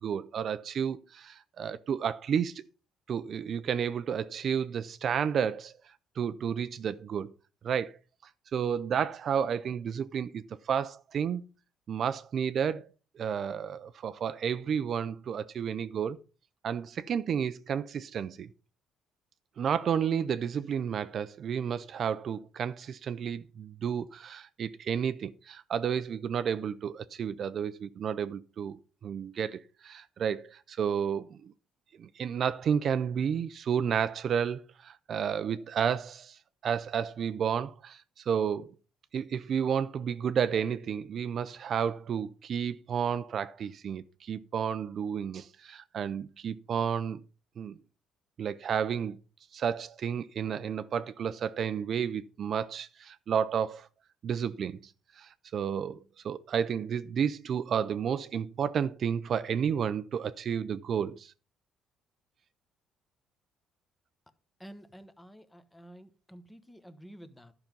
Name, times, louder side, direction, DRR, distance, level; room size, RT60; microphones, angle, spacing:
voice 1, 0.0-2.6 3.1-5.7 6.2-7.3 7.6-7.9 8.5-11.4 11.9-12.9 13.2-16.2 16.6-18.5 19.6-31.5 32.0-38.7 39.1-47.2 47.6-47.8 48.4-49.2 49.5-53.9 54.2-54.8 55.2-56.0 56.2-61.3, right 7 dB, 50° right, 0.5 m, -31 dB
voice 2, 64.6-67.5, equal, 10° left, 1.1 m, -50 dB
11.5 x 5.9 x 5.3 m
cardioid pair, 125°, 0 cm